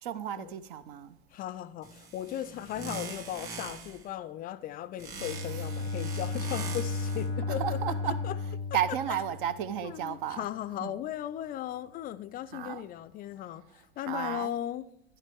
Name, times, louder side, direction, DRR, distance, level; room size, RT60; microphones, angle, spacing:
voice 1, 0.0-1.2 5.5-5.6 7.5-8.2 8.7-10.5 10.8-10.9 12.5-12.8 14.1-14.5, right 10 dB, 60° right, 0.6 m, -33 dB
voice 2, 1.3-8.4 8.9-9.0 9.8-14.9, left 12 dB, 30° left, 0.4 m, -37 dB
sound 1, 1.8-4.1 5.0-7.3, right 5 dB, 30° right, 2.2 m, -43 dB
Bowed string instrument, 5.1-9.9, left 3 dB, 85° right, 2.1 m, -34 dB
12.5 x 10.5 x 3.4 m
figure-of-eight pair, 75°, 29 cm